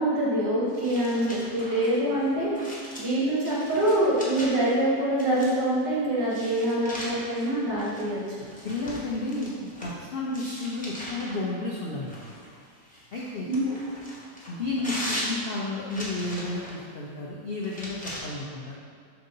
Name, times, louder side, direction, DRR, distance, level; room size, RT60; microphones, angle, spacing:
voice 1, 0.0-2.5 3.0-8.5 13.4-13.7, right 1 dB, 80° right, -7 dB, 2.1 m, -25 dB
sound 1, 0.7-4.7 5.2-5.8 6.3-10.0 10.3-11.4 12.1-16.8 17.6-18.2, equal, 5° left, 0.8 m, -39 dB
voice 2, 8.6-9.5 9.8-12.1 13.1-13.4 14.5-18.8, left 2 dB, 85° left, -4 dB, 0.5 m, -32 dB
4.6 x 3.9 x 5.3 m, 2.1 s
omnidirectional pair, 1.9 m